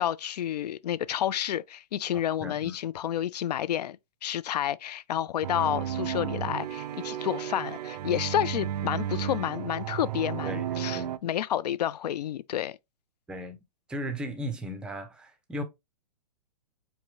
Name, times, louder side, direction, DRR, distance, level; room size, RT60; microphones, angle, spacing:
voice 1, 0.0-12.8, left 11 dB, 75° left, 0.4 m, -30 dB
voice 2, 2.1-2.8 10.4-11.2 13.3-13.6 13.9-15.6, equal, 5° right, 0.4 m, -37 dB
sound 1, 5.4-11.2, right 10 dB, 75° right, 0.5 m, -33 dB
4.6 x 2.7 x 2.9 m
hypercardioid pair, 150°, 21 cm